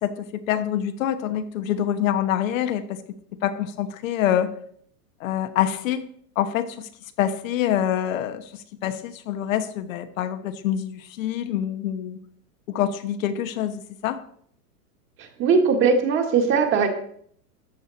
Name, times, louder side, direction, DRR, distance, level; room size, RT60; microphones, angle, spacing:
voice 1, 0.0-3.0 3.4-4.5 5.2-6.1 6.4-6.9 7.2-12.2 12.7-14.2, left 10 dB, 55° left, 9 dB, 1.2 m, -26 dB
voice 2, 15.2-16.9, right 5 dB, 25° right, 4 dB, 1.7 m, -20 dB
13.5 x 8.5 x 4.1 m, 0.62 s
supercardioid pair, 150°, 47 cm